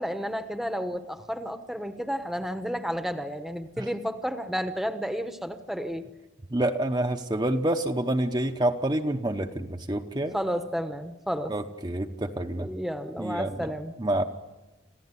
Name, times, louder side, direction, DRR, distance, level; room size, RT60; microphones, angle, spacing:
voice 1, 0.0-6.1 10.3-11.5 12.6-13.9, equal, ahead, 8 dB, 1.0 m, -31 dB
voice 2, 6.5-10.4 11.5-12.7 13.2-13.7 14.0-14.2, right 1 dB, 20° right, 4 dB, 0.9 m, -28 dB
27.5 x 15.0 x 9.9 m, 1.1 s
head